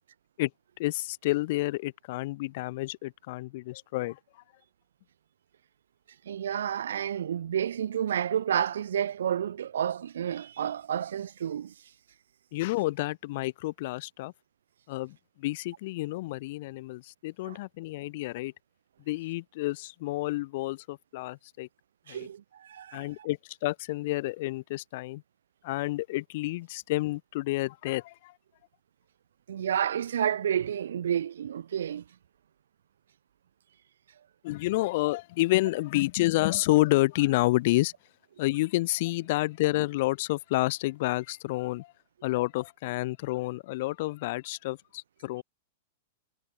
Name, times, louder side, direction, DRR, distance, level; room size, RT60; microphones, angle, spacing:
voice 1, 0.8-4.2 12.5-14.3 14.9-18.5 19.1-21.7 22.1-22.3 22.9-25.2 25.6-28.3 34.4-37.9 38.4-41.9 42.2-45.4, left 19 dB, 55° left, 0.4 m, -29 dB
voice 2, 6.2-11.7 17.4-17.6 22.1-23.3 29.5-32.0, right 9 dB, 90° right, 1.2 m, -30 dB
hypercardioid pair, 140°, 0 cm